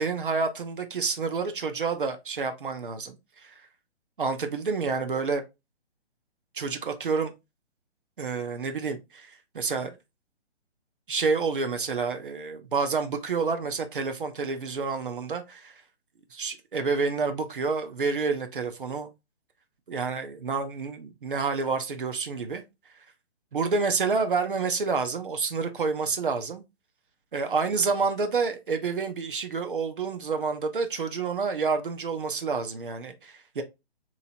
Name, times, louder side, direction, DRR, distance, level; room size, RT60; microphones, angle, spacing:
voice 1, 0.0-3.5 4.2-5.4 6.5-7.3 8.2-9.9 11.1-15.7 16.3-19.1 19.9-22.6 23.5-26.6 27.3-33.6, right 4 dB, 50° right, 0.6 m, -29 dB
2.9 x 2.7 x 2.7 m
figure-of-eight pair, 135°, 33 cm